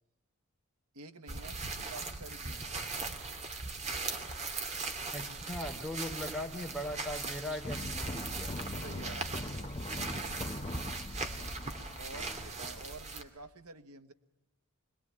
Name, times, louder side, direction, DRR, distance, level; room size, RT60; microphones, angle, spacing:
voice 1, 0.9-2.8 8.8-9.5 12.0-14.1, right 2 dB, 90° right, 8 dB, 1.5 m, -49 dB
sound 1, 1.3-13.2, right 3 dB, 30° right, 2.4 m, -39 dB
voice 2, 5.1-8.5 12.1-12.5, left 1 dB, 5° right, 3 dB, 4.1 m, -40 dB
sound 2, 7.6-12.8, left 1 dB, 25° left, 1.0 m, -41 dB
25.5 x 21.0 x 8.8 m, 0.92 s
head